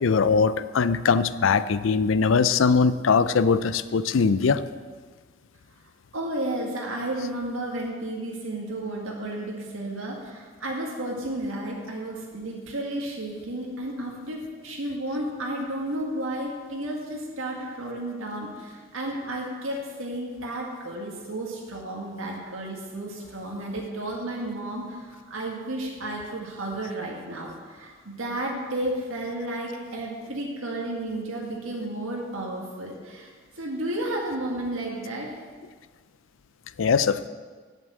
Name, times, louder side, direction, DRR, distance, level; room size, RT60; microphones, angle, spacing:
voice 1, 0.0-4.6 36.8-37.3, left 5 dB, 70° left, 14 dB, 0.5 m, -21 dB
voice 2, 6.1-35.3, right 1 dB, 85° right, -2 dB, 1.9 m, -32 dB
8.0 x 8.0 x 7.7 m, 1.5 s
head